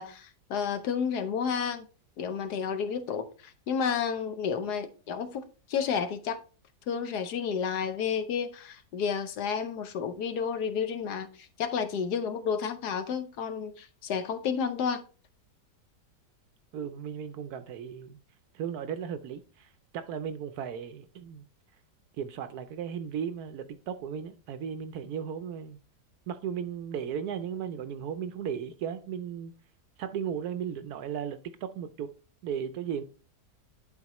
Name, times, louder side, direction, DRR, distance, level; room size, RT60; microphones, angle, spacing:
voice 1, 0.0-1.8 2.2-5.4 5.7-6.4 6.9-15.0, left 6 dB, 70° left, 1.2 m, -31 dB
voice 2, 16.7-18.2 18.5-21.5 22.2-25.8 26.3-29.5 30.0-32.1 32.4-33.0, right 8 dB, 70° right, 1.0 m, -36 dB
11.0 x 4.3 x 2.9 m
omnidirectional pair, 1.9 m